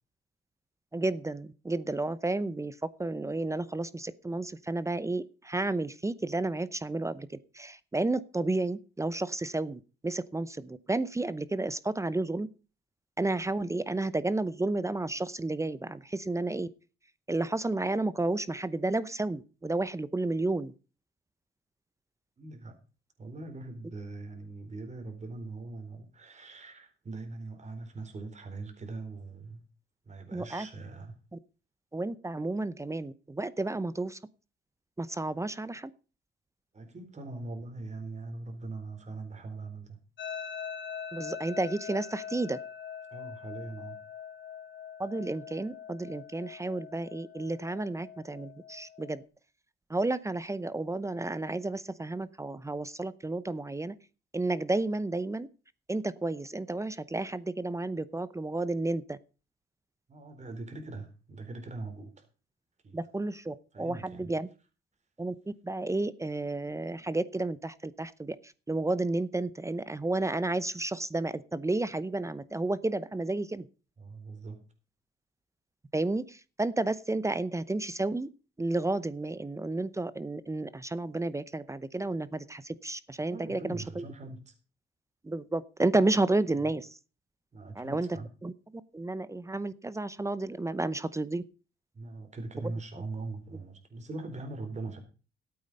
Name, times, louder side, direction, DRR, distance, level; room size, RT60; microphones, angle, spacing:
voice 1, 0.9-12.5 13.2-16.7 17.3-20.7 30.3-30.7 31.3-31.4 31.9-34.2 35.0-35.9 41.1-42.6 45.0-49.2 49.9-54.0 54.3-55.5 55.9-59.2 62.9-64.5 65.2-73.7 75.9-78.3 78.6-84.0 85.2-86.9 87.7-88.5 88.9-91.4, right 2 dB, 15° right, 0.7 m, -31 dB
voice 2, 22.4-22.7 23.2-29.6 30.1-31.1 36.7-40.0 43.1-44.0 60.1-62.2 62.8-63.0 63.7-64.3 74.0-74.6 83.3-84.5 86.6-86.7 87.5-88.3 91.9-95.0, right 3 dB, 35° right, 4.2 m, -41 dB
sound 1, 40.2-49.2, left 7 dB, 65° left, 1.6 m, -43 dB
13.5 x 8.7 x 5.4 m
cardioid pair, 90°, 20 cm